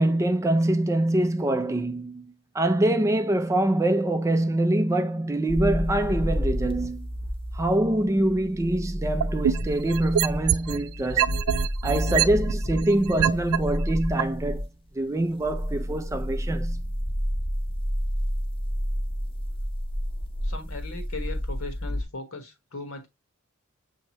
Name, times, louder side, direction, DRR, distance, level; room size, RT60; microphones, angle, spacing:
voice 1, 0.0-7.1 7.5-11.3 11.8-14.7 14.9-16.8, right 1 dB, 15° right, 0.3 m, -24 dB
sound 1, 5.5-14.7 15.3-22.0, equal, 25° left, 0.7 m, -30 dB
sound 2, 9.2-10.8 11.2-13.6 14.2-14.3, right 10 dB, 85° right, 0.3 m, -24 dB
voice 2, 20.4-23.1, left 3 dB, 75° left, 1.2 m, -38 dB
6.6 x 2.8 x 2.9 m
head